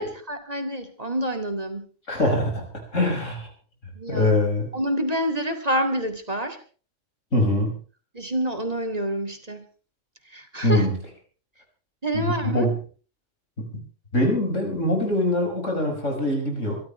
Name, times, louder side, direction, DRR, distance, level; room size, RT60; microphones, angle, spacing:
voice 1, 0.0-1.9 3.9-4.3 4.7-6.6 8.1-9.7 10.3-10.9 12.0-12.7, right 1 dB, 30° right, 6 dB, 2.3 m, -27 dB
voice 2, 2.1-2.7 2.9-3.5 4.1-4.7 7.3-7.7 10.6-11.0 12.1-12.7 13.7-13.8 14.1-16.8, left 1 dB, 85° left, 2 dB, 6.4 m, -23 dB
26.0 x 13.5 x 3.3 m, 0.38 s
omnidirectional pair, 1.3 m